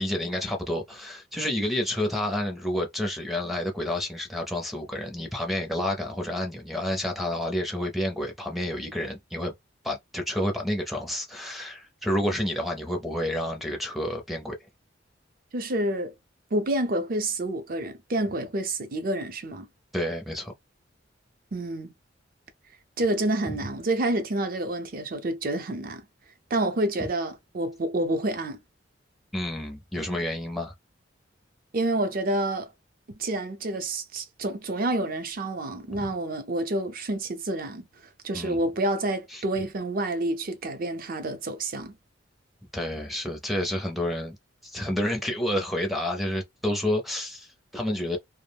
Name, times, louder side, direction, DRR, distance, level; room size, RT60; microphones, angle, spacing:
voice 1, 0.0-9.5 9.8-14.6 19.9-20.5 23.5-23.6 27.0-27.1 29.3-30.7 35.9-36.1 38.3-38.6 39.3-39.4 42.7-44.4 44.6-48.2, left 1 dB, ahead, 0.5 m, -29 dB
voice 2, 15.5-16.1 16.5-19.7 21.5-21.9 23.0-26.0 26.5-28.6 31.7-32.7 33.2-37.8 38.2-41.9, right 1 dB, 50° right, 0.5 m, -28 dB
2.3 x 2.0 x 3.3 m
head